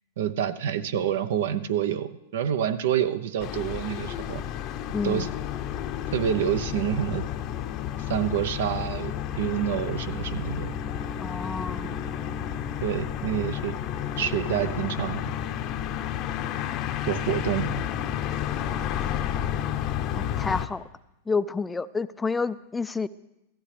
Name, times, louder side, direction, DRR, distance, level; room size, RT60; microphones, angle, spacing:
voice 1, 0.2-4.4 5.0-5.3 6.1-7.2 8.1-10.7 12.8-13.7 14.2-15.3 17.1-17.8, right 9 dB, 70° right, 12 dB, 0.7 m, -27 dB
sound 1, 3.4-20.7, left 10 dB, 45° left, 0.7 m, -31 dB
voice 2, 4.9-5.3 11.2-11.9 20.1-20.8 21.3-23.1, left 4 dB, 15° left, 15 dB, 0.4 m, -29 dB
16.0 x 14.5 x 3.3 m, 0.92 s
hypercardioid pair, 105°, 0 cm